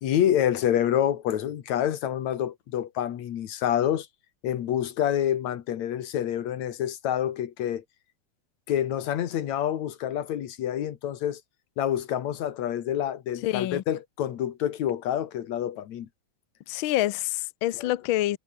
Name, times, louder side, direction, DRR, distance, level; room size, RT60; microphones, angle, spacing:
voice 1, 0.0-4.1 4.4-7.8 8.7-11.4 11.8-16.1 17.8-17.9, left 10 dB, 70° left, 2.8 m, -27 dB
voice 2, 13.4-13.8 16.7-18.4, left 15 dB, 90° left, 1.1 m, -27 dB
omnidirectional pair, 3.4 m